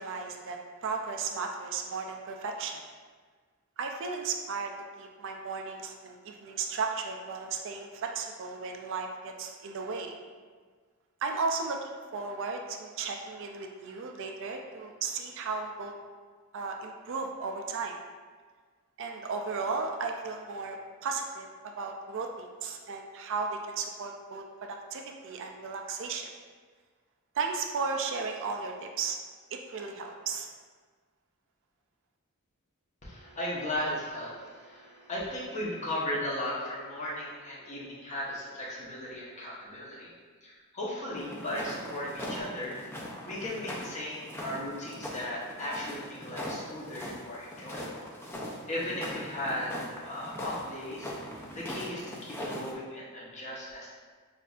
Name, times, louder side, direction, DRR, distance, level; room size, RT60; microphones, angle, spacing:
voice 1, 0.0-2.8 3.8-4.7 5.0-10.1 11.2-15.9 16.5-17.9 19.0-26.3 27.3-29.2 29.5-30.5, right 4 dB, 60° right, 3 dB, 0.4 m, -35 dB
voice 2, 33.0-40.1 40.4-42.8 43.3-48.0 48.7-51.1 51.5-53.9, left 1 dB, 35° left, -6 dB, 1.0 m, -36 dB
sound 1, 41.2-52.7, equal, 10° left, 0.5 m, -40 dB
6.6 x 2.6 x 2.4 m, 1.5 s
head